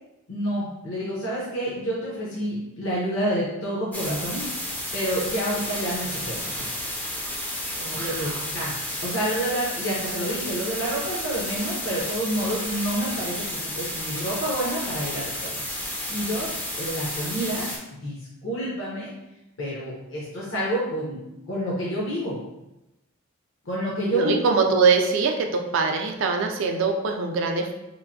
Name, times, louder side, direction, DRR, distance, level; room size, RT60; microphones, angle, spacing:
voice 1, 0.3-6.7 7.9-8.7 9.0-17.7 17.9-19.1 19.6-21.2 21.5-22.4 23.6-24.4, equal, 65° left, -6 dB, 0.7 m, -29 dB
sound 1, 3.9-17.8, left 1 dB, 10° left, 0.4 m, -32 dB
voice 2, 7.8-8.3 24.1-27.7, right 4 dB, 65° right, 3 dB, 0.4 m, -23 dB
3.0 x 2.5 x 2.6 m, 0.93 s
head